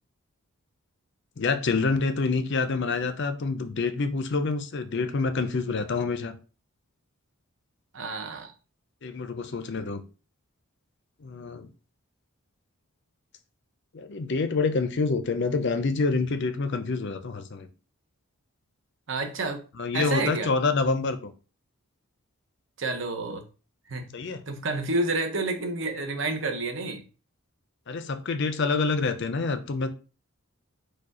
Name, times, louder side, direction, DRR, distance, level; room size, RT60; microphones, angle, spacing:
voice 1, 1.4-6.3 9.0-10.0 11.2-11.7 13.9-17.7 19.8-21.3 24.1-24.4 27.9-29.9, left 4 dB, 50° left, 9 dB, 0.5 m, -27 dB
voice 2, 7.9-8.5 19.1-19.6 19.9-20.5 22.8-23.4 23.9-24.1 24.5-27.0, right 2 dB, 55° right, 5 dB, 0.9 m, -29 dB
4.8 x 2.3 x 4.8 m, 0.34 s
head